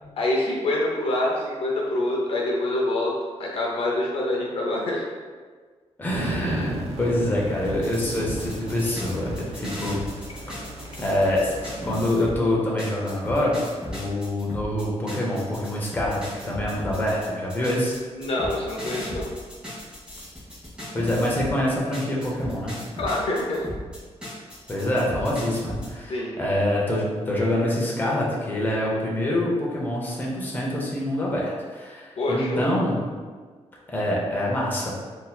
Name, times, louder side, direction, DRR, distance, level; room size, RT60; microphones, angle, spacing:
voice 1, 0.2-3.1 3.4-5.0 18.1-19.2 23.0-23.7 26.1-26.3 32.2-32.7, left 1 dB, 55° left, -2 dB, 0.5 m, -25 dB
voice 2, 6.0-10.0 10.5-10.6 11.0-11.5 11.8-13.5 13.9-17.9 20.9-22.8 24.7-33.2 33.9-34.9, left 1 dB, 15° left, -4 dB, 0.6 m, -25 dB
sound 1, 6.1-11.9, right 1 dB, 75° right, 0.5 m, -34 dB
sound 2, 7.6-12.4 12.8-21.6 21.9-25.9, left 1 dB, 10° right, 1.3 m, -36 dB
3.8 x 2.7 x 2.3 m, 1.5 s
wide cardioid pair, 150°, 11 cm